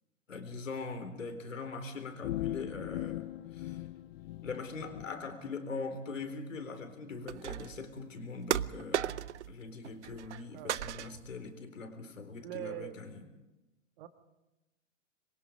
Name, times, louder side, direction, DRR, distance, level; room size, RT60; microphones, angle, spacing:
voice 1, 0.3-3.2 3.5-3.8 4.4-9.2 9.5-13.2, left 4 dB, 75° left, 7 dB, 3.9 m, -42 dB
sound 1, 2.2-5.1, left 15 dB, 50° left, 0.7 m, -39 dB
sound 2, 7.3-7.8 8.5-9.5 9.8-10.4 10.7-11.4, right 11 dB, 65° right, 0.7 m, -35 dB
voice 2, 10.5-10.8 11.8-11.9 12.4-13.0 14.0-14.1, right 13 dB, 45° right, 9 dB, 1.8 m, -42 dB
26.0 x 23.0 x 5.2 m, 1.0 s
figure-of-eight pair, 105°, 39 cm